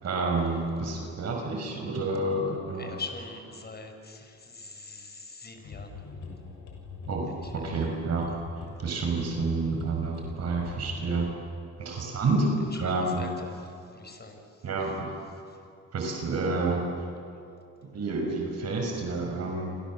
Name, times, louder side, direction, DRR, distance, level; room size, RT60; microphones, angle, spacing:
voice 1, 0.0-2.9 7.1-11.3 11.8-12.5 12.8-13.2 14.6-15.1 15.9-16.8 17.9-19.8, right 3 dB, 60° right, 1 dB, 5.8 m, -29 dB
voice 2, 2.8-6.1 7.4-7.9 12.6-14.9 15.5-15.6, left 4 dB, 35° left, 5 dB, 5.9 m, -44 dB
sound 1, 5.6-11.2, left 5 dB, 70° left, 7.1 m, -43 dB
28.0 x 27.0 x 7.6 m, 2.6 s
cardioid pair, 90°, 30 cm